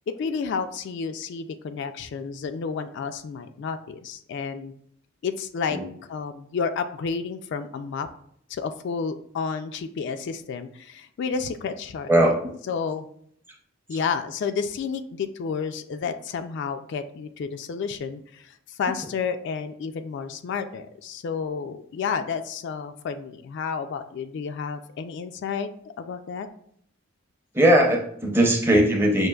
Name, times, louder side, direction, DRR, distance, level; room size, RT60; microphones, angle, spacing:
voice 1, 0.1-4.7 5.2-5.8 6.1-8.1 8.5-12.1 12.7-13.1 13.9-25.7 26.0-26.5, left 5 dB, 60° left, 8 dB, 0.3 m, -31 dB
voice 2, 27.5-29.3, right 1 dB, 10° right, 1 dB, 0.6 m, -19 dB
6.2 x 2.5 x 2.3 m, 0.67 s
head